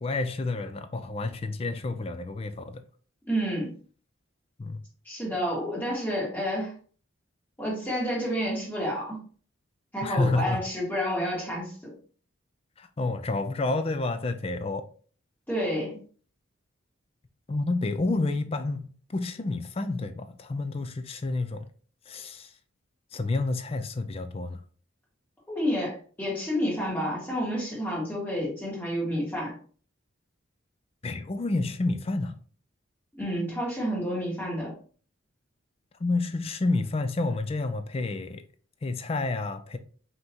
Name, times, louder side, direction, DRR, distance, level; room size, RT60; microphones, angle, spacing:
voice 1, 0.0-2.8 4.6-4.8 10.0-10.6 12.8-14.9 17.5-21.7 22.1-22.5 23.1-24.6 31.0-32.3 36.0-38.4 38.8-39.8, left 3 dB, 30° left, 0.3 m, -29 dB
voice 2, 3.3-3.7 5.1-6.7 7.6-9.2 9.9-11.9 15.5-16.0 25.5-29.5 33.1-34.7, equal, 10° left, 1.9 m, -29 dB
5.4 x 2.9 x 2.9 m
head